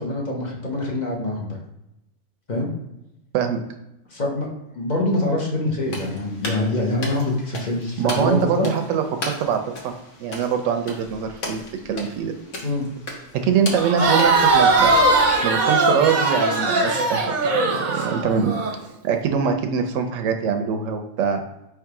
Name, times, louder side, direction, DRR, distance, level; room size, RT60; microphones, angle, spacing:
voice 1, 0.0-1.6 2.5-2.7 4.1-4.5 4.7-8.7 12.6-12.9, left 2 dB, 35° left, -1 dB, 1.0 m, -24 dB
sound 1, 5.8-15.6, left 2 dB, 70° left, 1.3 m, -36 dB
voice 2, 8.0-9.9 10.2-11.6 11.8-12.3 13.3-15.1 15.4-18.6 19.0-21.4, right 7 dB, 75° right, 5 dB, 0.9 m, -23 dB
Crowd, 13.8-18.7, right 3 dB, 45° right, 0.8 m, -19 dB
3.6 x 3.2 x 4.7 m, 0.91 s
omnidirectional pair, 1.3 m